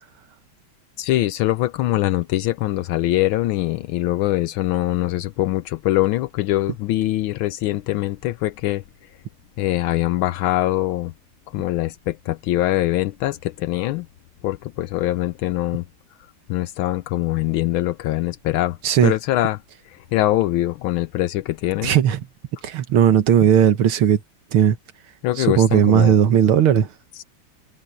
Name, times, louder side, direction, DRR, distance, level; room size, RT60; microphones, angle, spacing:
voice 1, 1.0-8.8 9.6-11.1 11.5-14.1 14.4-15.8 16.5-19.6 19.9-21.9 25.2-26.1, left 15 dB, 80° left, 1.4 m, -23 dB
voice 2, 21.8-22.2 22.6-24.2 24.5-24.8 25.4-26.9, right 9 dB, 85° right, 2.1 m, -16 dB
omnidirectional pair, 2.3 m